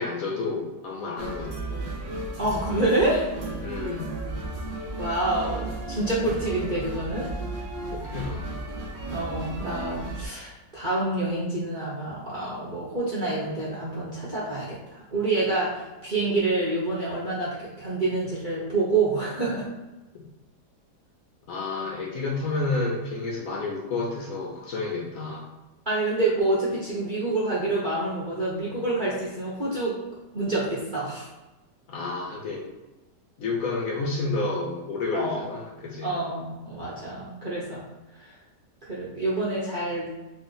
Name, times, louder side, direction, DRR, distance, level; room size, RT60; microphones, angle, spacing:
voice 1, 0.0-1.8 3.6-4.2 7.9-8.5 20.1-20.2 21.5-25.5 31.9-32.7 33.4-36.2, left 3 dB, 65° left, -2 dB, 0.9 m, -30 dB
sound 1, 1.2-10.3, right 2 dB, 80° right, 0.4 m, -34 dB
voice 2, 2.4-3.3 5.0-7.3 9.1-19.7 25.9-29.9 30.3-31.3 35.1-35.5 36.0-37.9 38.2-38.3 38.9-40.1, right 2 dB, 40° right, -8 dB, 0.7 m, -27 dB
3.2 x 2.4 x 3.8 m, 1.1 s
omnidirectional pair, 1.8 m